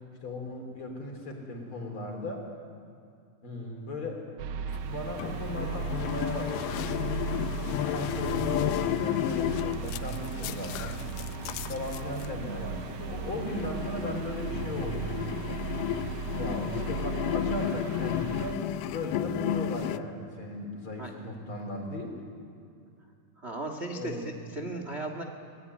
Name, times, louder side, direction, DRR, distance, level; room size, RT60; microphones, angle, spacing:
voice 1, 0.2-2.5 3.4-4.2 4.8-6.9 7.8-11.0 11.7-15.6 16.3-18.7 18.9-22.2 23.9-24.3, left 1 dB, 40° left, 2 dB, 4.2 m, -37 dB
sound 1, 4.4-18.5, right 6 dB, 70° right, 2.1 m, -37 dB
sound 2, 4.7-20.0, left 12 dB, 80° left, 2.3 m, -33 dB
voice 2, 23.4-24.2 24.5-25.2, right 2 dB, 30° right, 4 dB, 1.3 m, -36 dB
25.0 x 20.5 x 9.7 m, 2.4 s
omnidirectional pair, 3.9 m